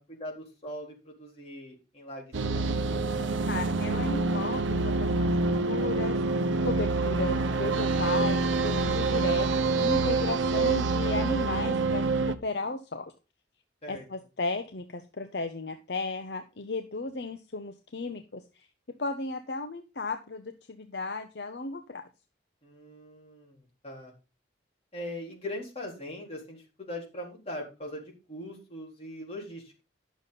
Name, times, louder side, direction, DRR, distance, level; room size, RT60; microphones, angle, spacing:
voice 1, 0.0-2.8 13.8-14.0 22.6-24.1 24.9-29.8, left 1 dB, 30° left, -2 dB, 3.9 m, -41 dB
sound 1, 2.3-12.4, right 3 dB, 80° right, 0.9 m, -26 dB
voice 2, 3.4-5.4 5.7-6.2 6.6-13.1 13.9-22.1, left 3 dB, 55° left, 7 dB, 0.8 m, -35 dB
10.5 x 7.2 x 4.0 m, 0.29 s
head